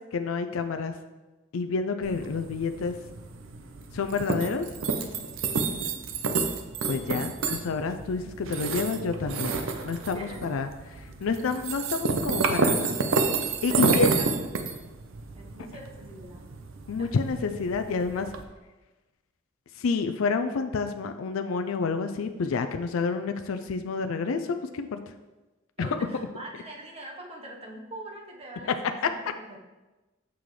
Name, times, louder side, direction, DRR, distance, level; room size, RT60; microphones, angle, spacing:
voice 1, 0.1-0.9 1.5-3.0 3.9-4.7 6.9-9.6 9.8-10.7 11.2-12.9 13.6-14.1 16.9-18.3 19.8-25.0 25.8-25.9 29.0-29.1, left 4 dB, 75° left, 8 dB, 0.4 m, -29 dB
sound 1, 2.0-18.4, right 4 dB, 70° right, 0.6 m, -30 dB
voice 2, 5.6-6.0 10.1-10.4 13.7-14.5 15.3-16.5 17.0-17.1 25.8-29.6, right 1 dB, 30° right, -1 dB, 1.1 m, -43 dB
7.0 x 6.0 x 3.2 m, 1.1 s
head